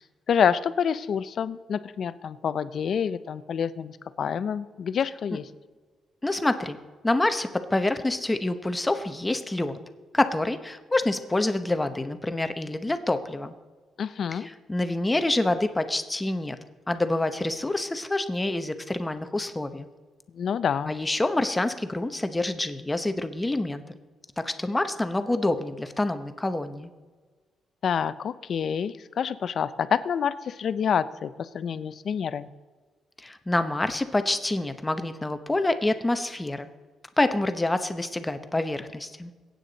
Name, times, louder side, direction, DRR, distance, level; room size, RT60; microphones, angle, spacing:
voice 1, 0.3-5.4 14.0-14.5 20.3-20.9 27.8-32.5, left 7 dB, 50° left, 14 dB, 0.6 m, -27 dB
voice 2, 6.2-6.8 7.0-9.8 10.1-13.5 14.4-16.6 16.9-19.9 20.8-24.0 24.4-26.9 33.2-36.7 37.2-39.3, left 2 dB, 10° left, 9 dB, 0.8 m, -27 dB
22.5 x 9.3 x 4.0 m, 1.4 s
cardioid pair, 140°, 0 cm